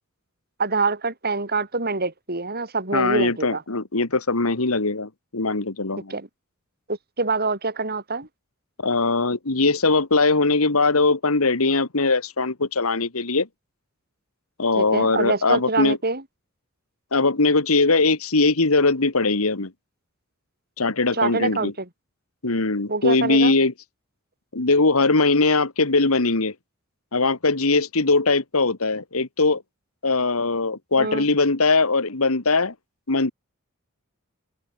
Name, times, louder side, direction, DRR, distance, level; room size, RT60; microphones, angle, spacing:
voice 1, 0.6-3.6 6.1-6.3 6.9-8.3 14.8-16.2 21.1-21.9 22.9-23.5 31.0-31.3, right 3 dB, 45° right, 6.5 m, -25 dB
voice 2, 2.9-6.1 8.8-13.5 14.6-16.0 17.1-19.7 20.8-21.7 22.4-23.7 24.5-26.5 27.1-29.6 30.0-32.7 33.1-33.3, left 3 dB, 80° left, 1.9 m, -21 dB
open air
head